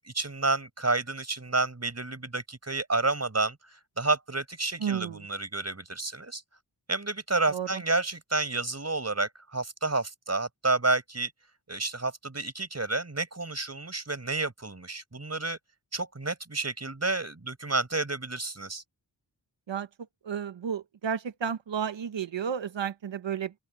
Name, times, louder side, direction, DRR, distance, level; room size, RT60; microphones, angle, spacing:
voice 1, 0.1-6.4 6.9-11.3 11.7-15.6 15.9-18.8, right 3 dB, 35° right, 5.6 m, -30 dB
voice 2, 4.8-5.3 7.5-7.8 19.7-19.9 20.2-23.5, right 7 dB, 75° right, 1.1 m, -32 dB
open air
cardioid pair, 60°, 45 cm